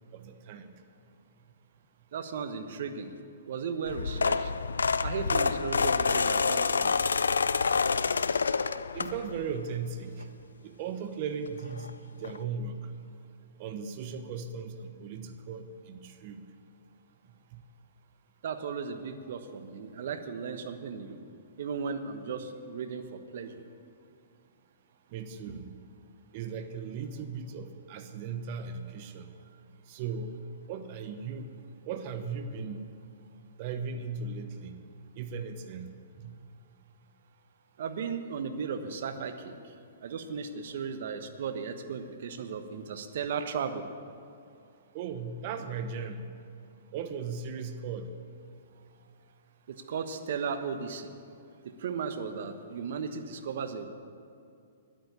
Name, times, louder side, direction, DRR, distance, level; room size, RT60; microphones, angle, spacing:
voice 1, 0.1-0.7 6.5-6.6 8.3-10.3 10.6-12.9 13.6-16.4 17.5-17.6 25.1-25.8 26.3-29.3 29.9-31.5 31.9-32.9 33.6-34.8 35.2-36.4 44.9-46.3 46.9-48.1, right 5 dB, 45° right, 8 dB, 1.0 m, -37 dB
voice 2, 2.1-3.1 3.5-4.5 5.0-7.0 18.4-21.2 21.6-23.5 37.8-39.5 40.0-43.8 49.7-51.1 51.8-53.9, right 6 dB, 65° right, 9 dB, 1.2 m, -35 dB
sound 1, 3.9-9.5 10.0-10.2 11.5-11.6 11.8-11.9 12.2-12.4, left 5 dB, 85° left, 0.4 m, -27 dB
10.5 x 9.0 x 9.9 m, 2.5 s
hypercardioid pair, 125°, 0 cm